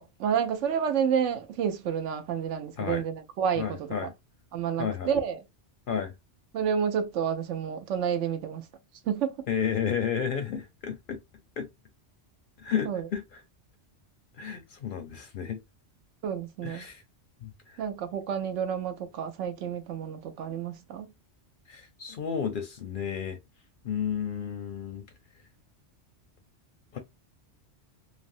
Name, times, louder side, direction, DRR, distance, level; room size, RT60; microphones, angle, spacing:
voice 1, 0.0-4.1 4.5-5.4 6.5-8.6 9.1-9.3 12.8-13.1 16.2-16.9 17.8-21.1, right 8 dB, 85° right, 0.9 m, -30 dB
voice 2, 3.6-4.1 4.8-5.1 5.9-6.1 9.5-11.2 11.6-11.7 12.6-13.4 14.4-15.6 16.6-17.0 17.4-17.8 21.7-23.4 23.8-25.0 26.9-27.0, left 7 dB, 60° left, 0.6 m, -32 dB
3.3 x 2.1 x 2.5 m
omnidirectional pair, 1.2 m